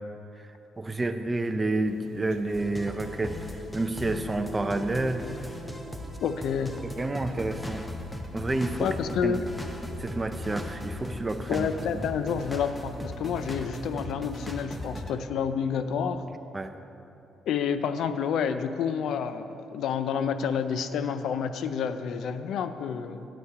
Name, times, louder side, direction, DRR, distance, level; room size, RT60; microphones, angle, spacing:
voice 1, 0.8-3.4 3.7-5.3 6.8-7.9 8.3-8.9 9.2-9.4 10.0-11.7 16.5-16.7, right 2 dB, 20° right, 9 dB, 0.5 m, -29 dB
sound 1, 1.8-13.7, right 2 dB, 75° right, 0.7 m, -50 dB
sound 2, 2.5-15.1, left 1 dB, 10° left, 0.8 m, -38 dB
voice 2, 6.2-6.8 8.8-9.4 11.5-16.2 17.5-23.3, left 7 dB, 75° left, 10 dB, 0.4 m, -29 dB
8.5 x 8.0 x 4.8 m, 2.9 s
cardioid pair, 90°, 0 cm